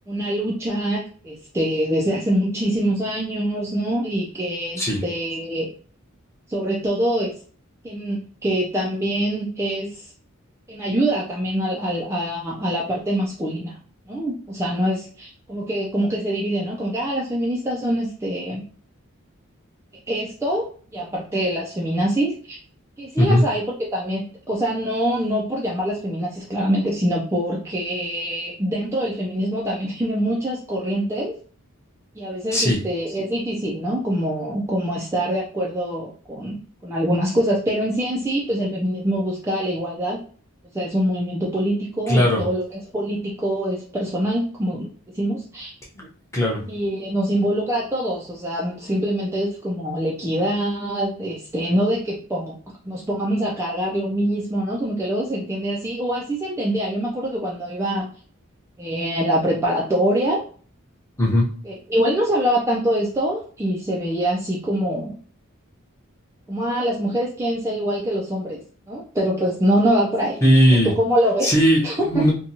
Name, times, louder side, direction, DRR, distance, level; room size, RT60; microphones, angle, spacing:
voice 1, 0.1-5.7 6.5-7.3 7.8-10.1 10.7-13.7 14.1-18.6 20.1-20.6 20.9-22.6 23.0-31.4 32.2-36.6 36.8-40.2 40.7-44.9 45.1-45.7 46.7-52.6 52.8-58.1 58.8-60.4 61.6-65.2 66.5-68.6 68.9-70.4 70.8-71.5 71.8-72.3, equal, 15° right, -4 dB, 0.4 m, -24 dB
voice 2, 42.1-42.4 46.0-46.1 46.3-46.6 61.2-61.4 70.4-70.9 71.4-72.3, equal, 15° left, -3 dB, 0.8 m, -17 dB
2.8 x 2.2 x 2.6 m, 0.42 s
head